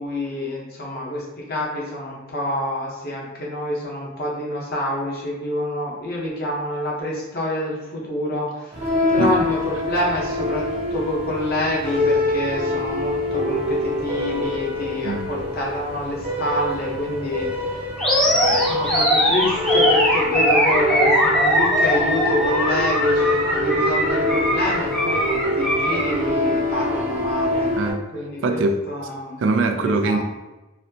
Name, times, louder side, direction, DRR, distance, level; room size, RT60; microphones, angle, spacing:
voice 1, 0.0-10.6 10.9-17.9 18.2-27.7 28.1-29.4 29.8-30.2, left 1 dB, 55° left, -3 dB, 0.9 m, -27 dB
sound 1, 8.7-27.9, left 2 dB, 30° right, 0.8 m, -25 dB
Animal, 18.0-26.2, equal, 5° left, 0.7 m, -20 dB
voice 2, 27.7-28.0 28.4-28.8 29.4-30.2, right 3 dB, 70° right, 6 dB, 0.4 m, -22 dB
4.0 x 2.1 x 2.7 m, 1.0 s
head